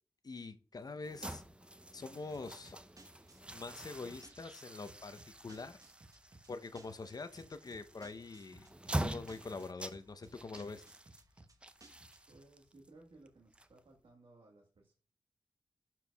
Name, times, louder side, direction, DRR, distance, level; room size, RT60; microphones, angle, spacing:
voice 1, 0.2-1.4 1.9-2.8 3.5-5.8 6.5-10.8, left 3 dB, 45° left, 10 dB, 0.7 m, -45 dB
sound 1, 1.0-14.1, right 1 dB, 10° right, 0.6 m, -45 dB
sound 2, 2.3-12.4, right 2 dB, 35° right, 1.0 m, -61 dB
voice 2, 12.3-14.9, right 2 dB, 70° right, 0 dB, 1.4 m, -60 dB
11.5 x 4.6 x 2.3 m, 0.42 s
cardioid pair, 50°, 9 cm